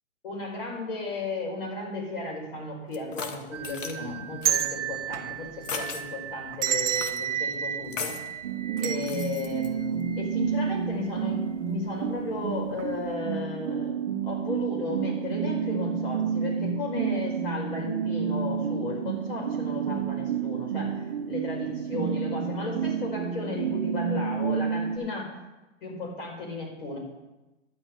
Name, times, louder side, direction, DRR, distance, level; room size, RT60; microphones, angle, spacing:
voice 1, 0.2-8.2 8.8-25.3 25.8-27.0, left 3 dB, 50° left, -1 dB, 5.1 m, -35 dB
sound 1, 2.9-4.0 4.4-4.7 5.6-6.0 6.9-7.2 7.9-8.3 8.8-9.7, left 5 dB, 85° left, 1.9 m, -37 dB
sound 2, 3.5-10.7 11.0-11.1 12.1-12.4 12.7-12.9, right 9 dB, 70° right, 0.8 m, -32 dB
sound 3, 8.4-25.0, right 7 dB, 20° right, 1.2 m, -30 dB
11.5 x 5.9 x 9.0 m, 1.0 s
hypercardioid pair, 180°, 37 cm